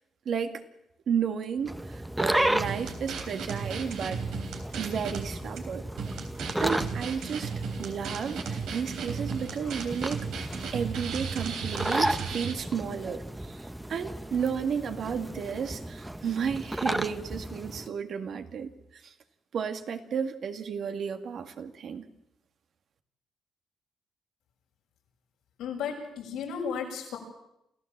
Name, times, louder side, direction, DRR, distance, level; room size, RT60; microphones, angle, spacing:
voice 1, 0.3-0.6 1.1-4.2 4.8-5.8 6.6-7.5 7.8-10.2 10.5-19.1 19.5-22.1, right 7 dB, 60° right, 7 dB, 1.9 m, -33 dB
sound 1, 1.7-17.9, right 1 dB, 5° right, 1.1 m, -34 dB
sound 2, 2.6-5.2 5.6-5.7 6.0-12.5, right 6 dB, 85° right, 3.4 m, -35 dB
voice 2, 25.6-27.2, left 6 dB, 90° left, 0 dB, 6.6 m, -34 dB
28.0 x 15.5 x 7.3 m, 0.84 s
cardioid pair, 90°, 0 cm